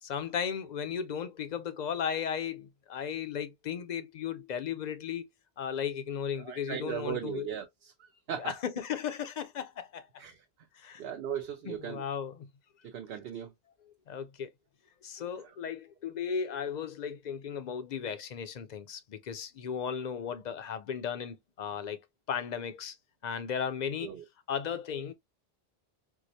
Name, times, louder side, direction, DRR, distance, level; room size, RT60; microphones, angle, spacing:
voice 1, 0.0-5.3 5.6-7.5 8.4-10.1 10.8-11.0 11.7-12.5 14.1-14.5 15.0-22.0 22.3-22.9 23.2-24.1 24.5-25.1, left 7 dB, 55° left, 0.5 m, -35 dB
voice 2, 6.4-8.5 10.2-10.4 11.0-12.0 12.8-13.5 15.4-15.5 24.0-24.2, right 9 dB, 75° right, 0.8 m, -38 dB
4.6 x 2.0 x 2.6 m
omnidirectional pair, 1.0 m